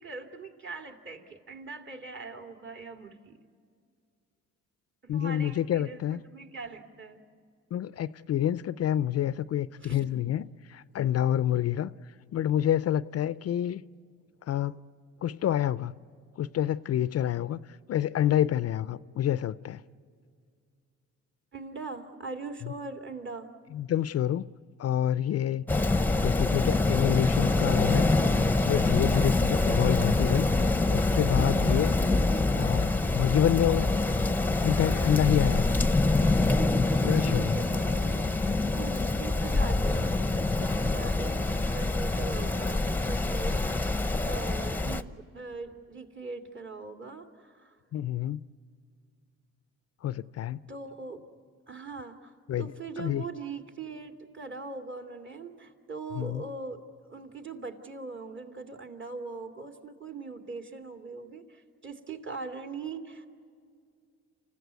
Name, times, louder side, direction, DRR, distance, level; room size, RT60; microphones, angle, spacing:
voice 1, 0.0-3.4 5.0-7.2 9.8-10.0 21.5-23.5 36.9-38.2 38.7-47.8 50.7-51.2 51.7-56.8 57.1-63.3, right 4 dB, 40° right, 2.4 m, -41 dB
voice 2, 5.1-6.2 7.7-11.9 12.3-13.8 14.5-14.8 15.2-15.9 16.4-17.6 17.9-19.8 23.7-24.4 24.8-25.6 26.2-28.1 28.6-30.5 30.9-31.9 32.5-33.9 34.6-35.8 37.0-37.6 47.9-48.4 50.0-50.6 52.5-52.7 53.0-53.2 56.1-56.4, left 11 dB, 55° left, 0.5 m, -28 dB
Rain, 25.7-45.0, left 2 dB, 5° left, 0.8 m, -25 dB
28.5 x 15.5 x 9.4 m
cardioid pair, 90°, 30 cm